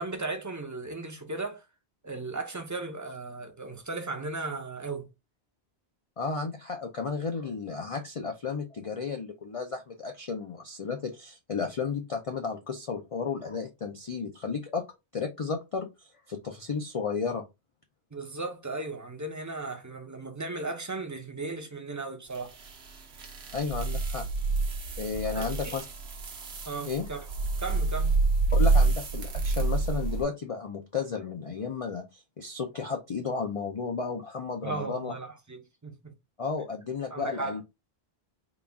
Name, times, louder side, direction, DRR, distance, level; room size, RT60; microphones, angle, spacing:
voice 1, 0.0-1.7 2.0-5.1 18.1-22.6 25.3-25.8 26.7-27.3 27.6-28.2 34.6-36.1 37.1-37.6, right 3 dB, 20° right, 0.5 m, -36 dB
voice 2, 6.2-14.8 15.1-17.4 23.5-24.2 25.0-25.8 26.8-27.1 28.5-35.1 36.4-37.6, left 5 dB, 45° left, 0.4 m, -33 dB
sound 1, 22.3-30.2, right 3 dB, 70° right, 1.1 m, -28 dB
4.0 x 2.3 x 3.4 m
omnidirectional pair, 1.1 m